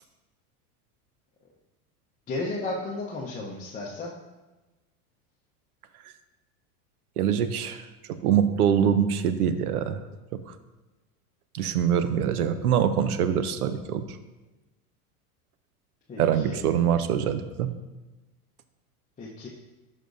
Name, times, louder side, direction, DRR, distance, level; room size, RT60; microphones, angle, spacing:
voice 1, 2.3-4.1 16.1-16.6 19.2-19.5, left 2 dB, 15° left, -4 dB, 0.9 m, -33 dB
voice 2, 7.2-7.8 8.2-10.0 10.5-10.6 11.5-14.1 16.2-17.7, right 8 dB, 90° right, 11 dB, 0.7 m, -24 dB
10.5 x 5.3 x 2.6 m, 1.1 s
hypercardioid pair, 110°, 43 cm